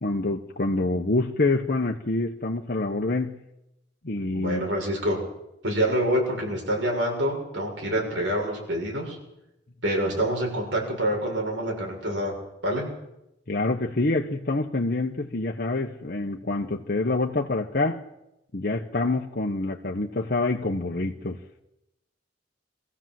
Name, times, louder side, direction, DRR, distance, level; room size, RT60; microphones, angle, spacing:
voice 1, 0.0-3.4 4.0-4.7 13.5-18.0 18.5-21.4, left 2 dB, 55° left, 0 dB, 1.1 m, -26 dB
voice 2, 4.3-5.2 5.6-9.2 9.8-12.3 12.6-12.8, right 1 dB, 85° right, 0 dB, 6.7 m, -26 dB
24.0 x 15.0 x 7.7 m, 0.90 s
head